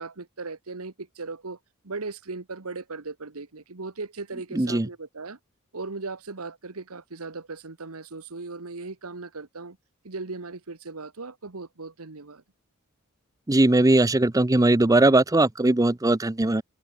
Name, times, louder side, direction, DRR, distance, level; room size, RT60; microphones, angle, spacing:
voice 1, 0.0-1.6 1.8-5.4 5.7-9.8 10.0-12.4, right 3 dB, 85° right, 1.5 m, -37 dB
voice 2, 4.6-4.9 13.5-16.6, right 2 dB, 15° right, 0.6 m, -19 dB
head